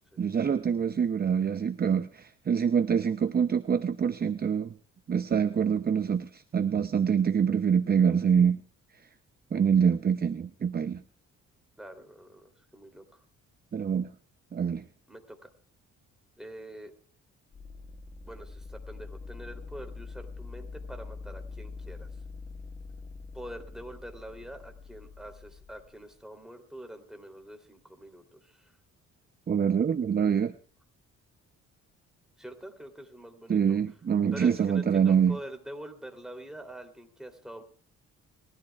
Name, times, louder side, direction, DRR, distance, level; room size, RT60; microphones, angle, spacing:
voice 1, 0.2-4.7 5.1-8.6 9.5-11.0 13.7-14.1 14.5-14.8 29.5-30.5 33.5-35.4, right 7 dB, 30° right, 10 dB, 0.6 m, -25 dB
voice 2, 11.8-13.2 15.1-15.5 16.4-16.9 18.2-22.1 23.3-28.7 32.4-33.8 34.3-37.6, right 1 dB, ahead, 4 dB, 3.2 m, -45 dB
sound 1, 17.5-26.2, left 4 dB, 25° left, 1.5 m, -44 dB
30.0 x 13.5 x 2.4 m, 0.44 s
cardioid pair, 90°, 30 cm